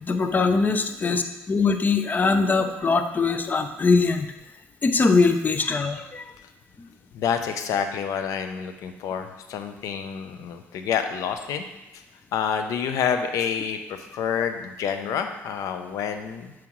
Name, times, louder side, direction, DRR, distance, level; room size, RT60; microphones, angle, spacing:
voice 1, 0.0-4.3 4.8-6.3, left 4 dB, 30° left, 8 dB, 0.6 m, -22 dB
voice 2, 7.1-11.7 11.9-12.0 12.3-16.5, left 7 dB, 70° left, 7 dB, 0.6 m, -28 dB
7.2 x 4.8 x 3.1 m, 0.98 s
supercardioid pair, 75°, 6 cm